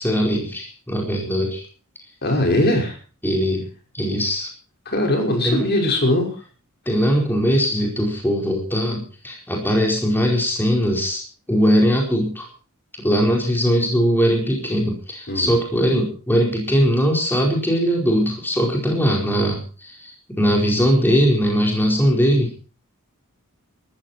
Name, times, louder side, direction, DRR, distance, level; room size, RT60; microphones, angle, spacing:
voice 1, 0.0-1.6 3.2-3.6 3.9-4.5 5.4-5.7 6.9-11.2 11.5-12.5 13.0-22.5, equal, 10° left, 0 dB, 4.8 m, -20 dB
voice 2, 2.2-3.0 4.9-6.4 15.3-15.5, left 1 dB, 50° left, 2 dB, 5.9 m, -20 dB
18.5 x 14.0 x 4.5 m, 0.37 s
head